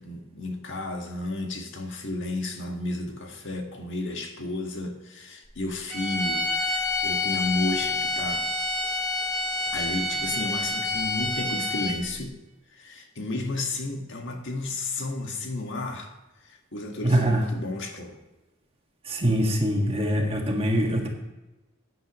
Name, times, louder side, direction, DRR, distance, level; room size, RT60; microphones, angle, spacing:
voice 1, 0.0-8.5 9.7-12.4 12.7-16.1 16.4-18.2, left 2 dB, 60° left, 3 dB, 1.7 m, -32 dB
sound 1, 5.9-12.1, left 2 dB, 5° left, 3.2 m, -28 dB
voice 2, 17.0-17.4 19.1-21.1, right 1 dB, 30° right, 1 dB, 1.8 m, -23 dB
14.0 x 9.3 x 3.0 m, 1.1 s
head